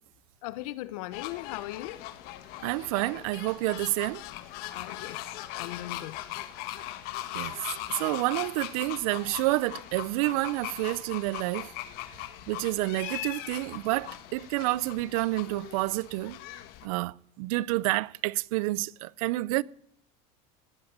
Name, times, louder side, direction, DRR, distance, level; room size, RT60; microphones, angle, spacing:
voice 1, 0.4-2.0 4.7-6.2, left 16 dB, 85° left, 1.2 m, -39 dB
sound 1, 1.1-16.9, left 14 dB, 60° left, 1.5 m, -40 dB
voice 2, 2.6-4.2 7.3-7.5 7.9-11.7 12.5-16.4 16.8-19.6, right 20 dB, 75° right, 0.6 m, -29 dB
18.0 x 8.9 x 8.8 m
supercardioid pair, 145°, 18 cm